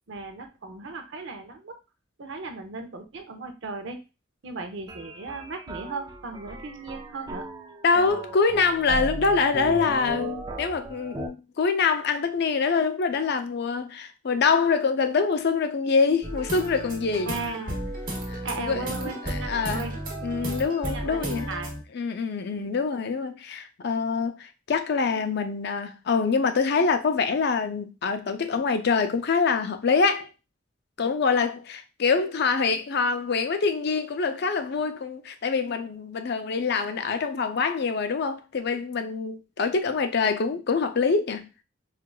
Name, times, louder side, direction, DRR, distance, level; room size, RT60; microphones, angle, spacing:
voice 1, 0.1-1.8 2.2-4.0 4.4-7.5 17.3-17.8 18.4-19.9 20.8-21.7 22.5-22.8, right 3 dB, 65° right, 0.6 m, -36 dB
sound 1, 4.9-11.3, right 1 dB, 20° right, 0.4 m, -37 dB
voice 2, 7.8-17.3 18.3-19.8 20.2-21.5 21.9-30.3 31.0-41.5, left 5 dB, 55° left, 0.5 m, -25 dB
sound 2, 16.2-21.8, right 1 dB, 45° right, 1.1 m, -33 dB
4.5 x 2.4 x 2.3 m
head